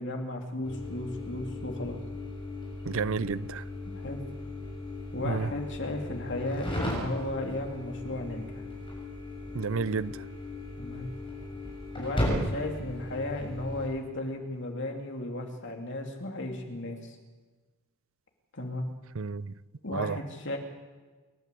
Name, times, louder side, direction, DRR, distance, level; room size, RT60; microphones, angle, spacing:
voice 1, 0.0-2.0 3.9-4.2 5.1-8.6 10.8-11.1 11.9-17.2 18.5-18.9 19.8-20.6, left 1 dB, 60° left, 3.0 m, -35 dB
sound 1, 0.6-13.8, left 1 dB, 25° left, 7.2 m, -36 dB
voice 2, 2.9-3.6 5.2-5.5 9.5-10.1 19.2-19.5 19.9-20.2, right 5 dB, 65° right, 0.6 m, -30 dB
28.5 x 12.5 x 8.4 m
head